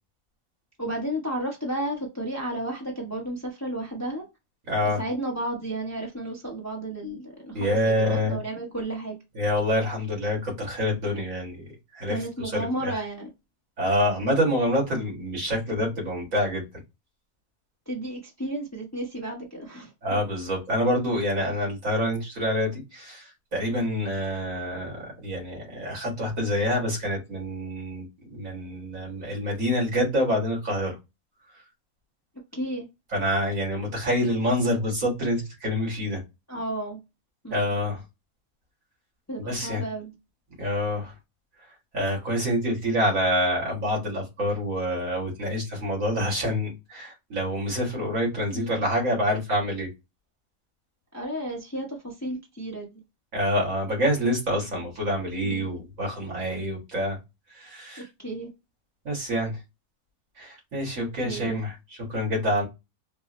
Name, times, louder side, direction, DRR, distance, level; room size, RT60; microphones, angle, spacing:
voice 1, 0.8-4.3 5.0-9.2 12.1-13.3 15.6-15.8 17.9-20.2 32.5-32.9 36.5-37.0 37.4-37.7 39.3-40.1 48.5-48.9 51.1-53.0 55.4-55.8 58.0-58.5 61.0-61.6, right 1 dB, 15° left, -1 dB, 0.7 m, -33 dB
voice 2, 4.7-5.0 7.5-8.4 9.3-12.9 13.8-16.6 20.0-31.0 33.1-36.2 37.5-38.0 39.4-39.8 40.6-41.1 41.9-49.9 53.3-57.2 57.5-58.1 59.1-59.6 60.4-61.8 62.1-62.7, equal, 70° right, -2 dB, 2.1 m, -27 dB
4.6 x 2.0 x 2.9 m, 0.24 s
omnidirectional pair, 1.4 m